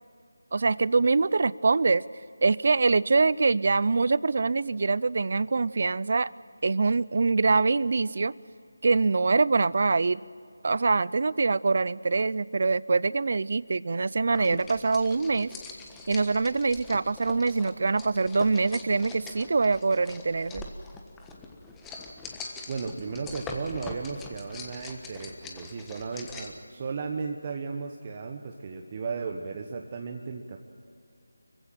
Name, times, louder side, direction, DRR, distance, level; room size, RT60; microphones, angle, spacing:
voice 1, 0.5-2.0 2.4-6.3 6.6-8.3 8.8-10.2 10.6-15.5 16.1-20.7, right 4 dB, 50° right, 21 dB, 0.5 m, -24 dB
sound 1, 14.3-26.6, left 3 dB, 10° left, 1.3 m, -43 dB
voice 2, 22.7-30.6, right 5 dB, 30° right, 3 dB, 1.2 m, -35 dB
25.0 x 16.0 x 9.0 m, 2.4 s
figure-of-eight pair, 165°, 0 cm